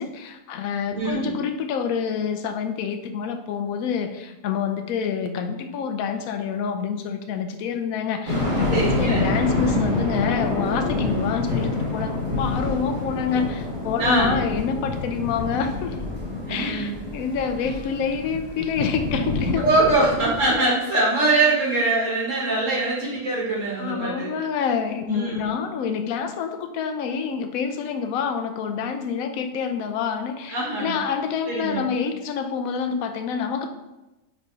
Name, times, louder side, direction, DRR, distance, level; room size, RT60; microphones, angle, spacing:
voice 1, 0.0-16.0 16.5-19.9 23.8-33.7, left 6 dB, 75° left, 6 dB, 1.0 m, -27 dB
voice 2, 0.9-1.3 8.7-9.3 14.0-14.4 16.5-16.9 19.6-24.3 25.1-25.5 30.5-31.0 31.5-31.9, right 2 dB, 60° right, -5 dB, 2.0 m, -23 dB
sound 1, 8.3-20.5, left 2 dB, 35° right, 1.5 m, -27 dB
6.7 x 3.1 x 4.7 m, 1.0 s
omnidirectional pair, 1.5 m